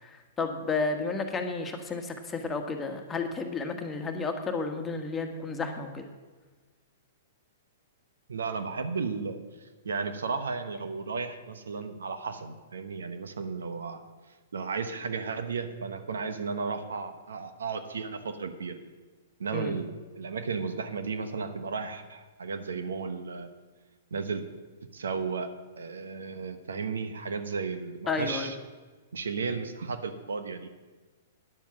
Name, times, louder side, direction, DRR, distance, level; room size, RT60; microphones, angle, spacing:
voice 1, 0.0-6.1 19.5-19.7 28.1-28.5, left 4 dB, 15° left, 4 dB, 1.4 m, -32 dB
voice 2, 8.3-14.0 14.5-18.8 19.4-23.5 24.1-24.4 24.9-25.5 25.8-28.6 29.1-30.7, right 5 dB, 80° right, 9 dB, 1.0 m, -34 dB
9.8 x 7.2 x 7.2 m, 1.3 s
hypercardioid pair, 120°, 0 cm